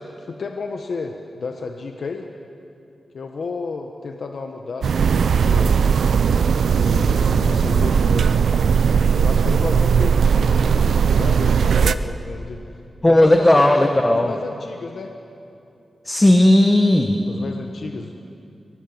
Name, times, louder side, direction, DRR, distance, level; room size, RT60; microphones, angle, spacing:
voice 1, 0.0-2.3 3.1-5.7 6.7-8.4 8.9-12.8 13.0-15.1 17.3-18.1, left 4 dB, 60° left, 4 dB, 1.2 m, -32 dB
sound 1, 4.8-12.0, right 6 dB, 85° right, 0.6 m, -18 dB
voice 2, 13.0-14.3 16.1-17.2, left 1 dB, 15° left, 5 dB, 1.1 m, -15 dB
23.5 x 19.0 x 7.9 m, 2.7 s
wide cardioid pair, 135°, 0 cm